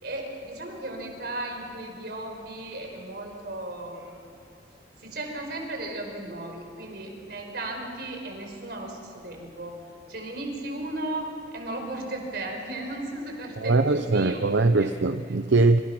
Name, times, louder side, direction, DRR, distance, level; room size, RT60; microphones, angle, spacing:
voice 1, 0.0-4.2 5.0-9.8 10.1-14.4 14.7-14.9, right 2 dB, 60° right, 2 dB, 5.0 m, -35 dB
voice 2, 13.6-15.8, right 3 dB, 80° right, 10 dB, 0.7 m, -21 dB
27.0 x 27.0 x 6.1 m, 2.5 s
head